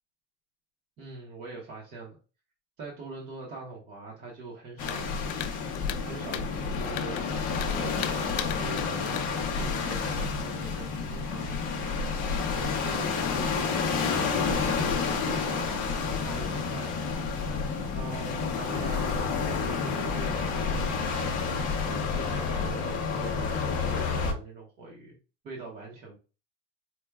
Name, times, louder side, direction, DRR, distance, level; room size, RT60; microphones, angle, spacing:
voice 1, 1.0-2.2 2.8-5.2 6.0-12.0 12.6-13.9 14.4-17.2 17.9-21.0 21.9-25.2 25.4-26.2, right 3 dB, 25° right, -3 dB, 0.6 m, -43 dB
sound 1, 4.8-10.0, left 10 dB, 75° left, 0.6 m, -39 dB
sound 2, 4.8-24.3, left 5 dB, 20° left, 0.5 m, -29 dB
4.5 x 2.1 x 3.3 m, 0.33 s
supercardioid pair, 175°, 39 cm